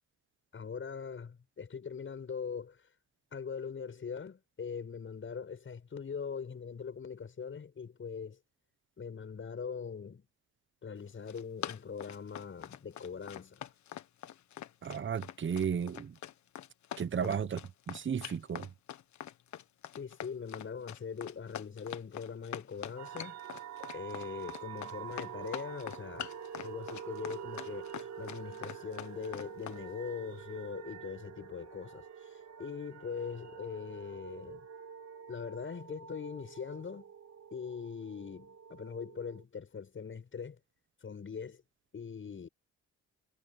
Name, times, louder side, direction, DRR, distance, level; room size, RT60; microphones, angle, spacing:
voice 1, 0.5-2.9 3.3-8.4 9.0-10.3 10.8-13.7 17.2-17.3 19.9-23.4 23.9-26.3 26.6-34.7 35.3-37.1 37.5-40.6 41.0-41.6 41.9-42.5, left 6 dB, 40° left, 7.9 m, -42 dB
Run, 11.1-29.8, left 11 dB, 70° left, 1.5 m, -44 dB
voice 2, 14.8-16.1 17.0-17.6 17.9-18.7, right 7 dB, 40° right, 1.3 m, -34 dB
sound 1, 23.0-39.4, right 8 dB, 60° right, 2.3 m, -47 dB
cardioid pair, 90°, 30 cm